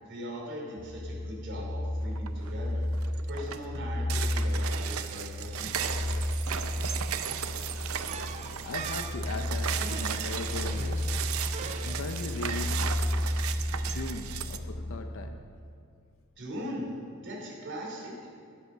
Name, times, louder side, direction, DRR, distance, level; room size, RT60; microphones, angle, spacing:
voice 1, 0.0-5.9 16.4-16.9 17.2-18.1, equal, 60° right, -3 dB, 2.8 m, -40 dB
sound 1, 0.8-15.0, left 1 dB, 10° right, 1.4 m, -33 dB
sound 2, 2.2-2.5 2.9-14.6, right 8 dB, 75° right, 0.6 m, -36 dB
voice 2, 6.3-15.5, left 3 dB, 65° left, 5 dB, 0.6 m, -41 dB
sound 3, 8.1-12.4, right 4 dB, 30° right, 0.5 m, -44 dB
12.5 x 8.0 x 6.1 m, 2.4 s
head